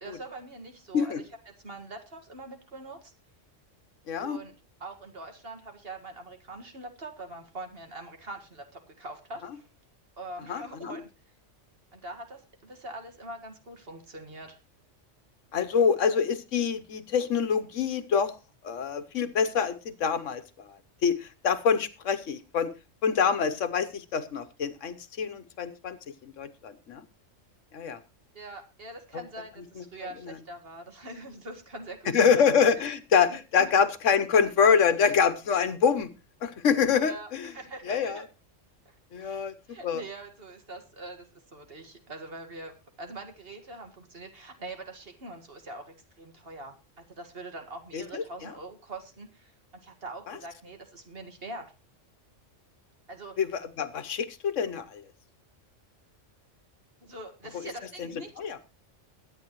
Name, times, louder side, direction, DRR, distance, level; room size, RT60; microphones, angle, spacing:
voice 1, 0.0-3.1 4.2-9.7 10.2-11.1 11.9-14.6 28.3-32.4 33.2-33.7 37.0-38.3 38.9-51.7 53.1-53.4 57.0-58.3, right 2 dB, 50° right, 5 dB, 2.0 m, -43 dB
voice 2, 4.1-4.4 10.5-11.0 15.5-18.3 18.6-20.4 21.0-22.7 23.0-26.0 26.4-27.0 27.7-28.0 32.1-36.1 36.4-37.5 37.9-38.2 39.1-39.5 39.8-40.0 47.9-48.2 53.4-55.0 58.0-58.1 58.4-58.6, left 6 dB, 80° left, 11 dB, 1.3 m, -25 dB
22.5 x 8.9 x 3.0 m, 0.28 s
omnidirectional pair, 1.3 m